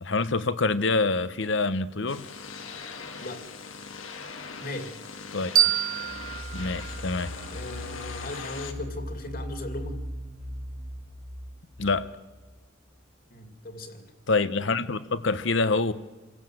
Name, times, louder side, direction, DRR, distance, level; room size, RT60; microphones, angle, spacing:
voice 1, 0.0-2.3 5.3-5.5 6.5-7.3 11.8-12.1 14.3-15.9, left 3 dB, 65° left, 14 dB, 0.9 m, -26 dB
sound 1, 2.1-8.7, left 5 dB, 85° left, 1.9 m, -41 dB
voice 2, 4.6-4.9 7.5-10.0 13.3-14.1, left 2 dB, 50° left, 6 dB, 2.6 m, -37 dB
sound 2, 5.5-8.3, right 10 dB, 45° right, 1.0 m, -28 dB
sound 3, 6.0-12.6, equal, 70° right, 3.0 m, -39 dB
28.0 x 16.5 x 7.7 m, 1.3 s
head